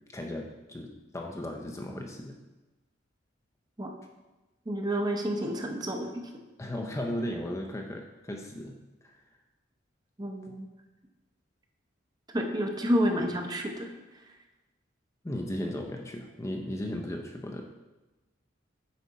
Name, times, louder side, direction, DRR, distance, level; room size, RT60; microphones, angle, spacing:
voice 1, 0.1-2.3 6.6-8.8 9.0-9.1 10.2-10.6 15.2-17.6, left 1 dB, 15° left, 1 dB, 0.5 m, -36 dB
voice 2, 4.7-6.1 10.2-10.7 12.3-13.9, equal, 20° right, 3 dB, 0.8 m, -29 dB
8.4 x 4.9 x 4.1 m, 1.1 s
head